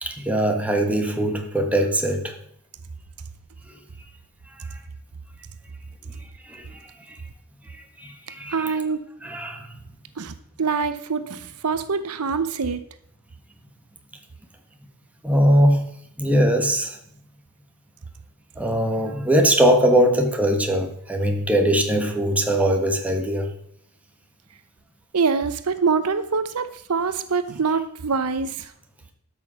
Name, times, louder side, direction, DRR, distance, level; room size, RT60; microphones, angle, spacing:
voice 1, 0.0-2.4 4.6-4.7 6.4-7.2 7.7-8.8 9.2-9.7 15.2-15.8 16.2-17.0 18.6-23.5, equal, 5° right, 3 dB, 1.4 m, -21 dB
voice 2, 8.5-9.0 10.2-12.8 25.1-28.7, right 5 dB, 85° right, 12 dB, 0.8 m, -24 dB
13.0 x 6.2 x 5.7 m, 0.69 s
head